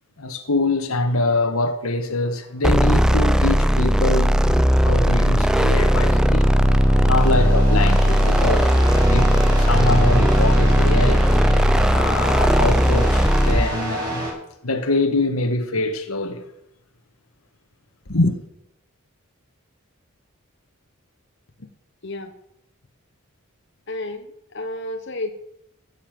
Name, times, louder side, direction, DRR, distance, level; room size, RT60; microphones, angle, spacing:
voice 1, 0.2-6.5 7.0-11.3 11.8-14.2 14.6-16.5 18.1-18.3, left 2 dB, 85° left, 1.7 m, -24 dB
sound 1, 2.6-13.7, equal, 5° right, 0.4 m, -17 dB
sound 2, 3.6-14.3, right 1 dB, 20° right, 5.6 m, -30 dB
voice 2, 22.0-22.3 23.9-25.3, left 2 dB, 55° left, 1.1 m, -31 dB
15.5 x 7.4 x 7.6 m
head